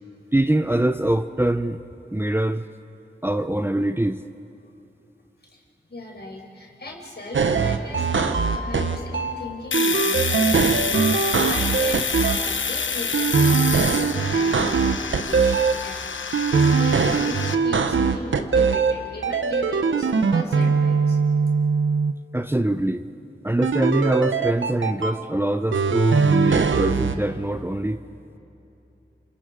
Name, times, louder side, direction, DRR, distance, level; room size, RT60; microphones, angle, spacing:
voice 1, 0.3-1.8 2.1-2.7 3.2-4.2 22.3-23.0 23.4-28.0, right 1 dB, 10° right, 10 dB, 0.7 m, -23 dB
voice 2, 5.9-21.2, left 2 dB, 55° left, 1 dB, 4.9 m, -37 dB
sound 1, 7.3-9.3 9.7-12.4 13.1-15.7 16.3-18.9 19.2-22.1 23.6-25.1 25.7-27.2, right 5 dB, 80° right, 1.1 m, -21 dB
Domestic sounds home sounds, 9.7-17.5, left 5 dB, 75° left, 1.0 m, -28 dB
28.5 x 26.0 x 5.2 m, 2.9 s
cardioid pair, 40°, 20 cm